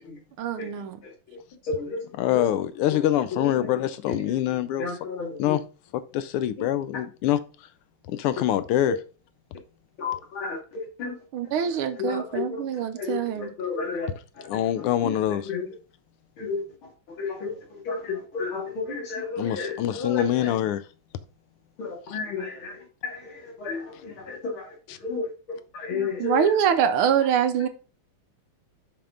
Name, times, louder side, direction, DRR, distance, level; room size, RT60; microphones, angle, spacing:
voice 1, 0.4-1.0 11.3-13.5 25.9-27.7, right 8 dB, 75° right, 1.6 m, -24 dB
voice 2, 1.6-2.4 2.9-3.0 3.3-3.7 4.0-4.4 4.8-5.6 6.6-6.7 10.0-11.2 11.6-12.7 12.9-14.4 14.8-15.7 16.4-17.6 17.8-20.5 21.8-26.5, left 4 dB, 70° left, 3.1 m, -33 dB
voice 3, 2.2-4.8 5.4-5.6 6.1-7.4 8.1-9.0 14.5-15.4 19.4-20.8, left 12 dB, 85° left, 1.6 m, -24 dB
6.7 x 5.7 x 3.8 m
omnidirectional pair, 2.4 m